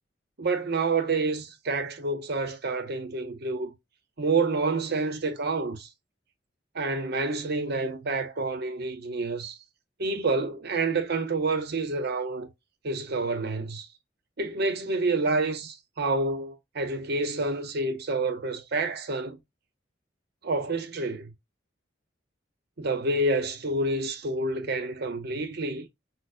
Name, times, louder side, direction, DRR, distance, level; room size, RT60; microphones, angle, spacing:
voice 1, 0.4-3.7 4.2-5.9 6.7-9.6 10.0-12.5 12.8-13.9 14.4-19.4 20.4-21.3 22.8-25.9, right 3 dB, 60° right, 0.8 m, -28 dB
6.3 x 2.1 x 2.5 m
head